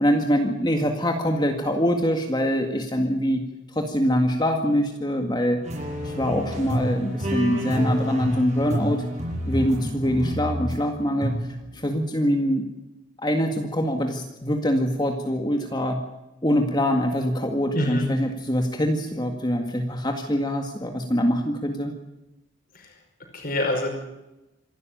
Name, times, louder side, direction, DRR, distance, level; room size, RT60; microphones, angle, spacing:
voice 1, 0.0-3.4 3.7-5.6 6.0-9.0 9.5-12.7 13.2-16.0 16.4-21.9, equal, 20° left, 4 dB, 1.9 m, -24 dB
sound 1, 5.6-10.8 11.2-11.6, equal, 35° right, 7.5 m, -28 dB
voice 2, 17.7-18.1 22.7-23.9, left 1 dB, 45° left, 3 dB, 5.4 m, -27 dB
27.0 x 12.5 x 9.2 m, 0.96 s
head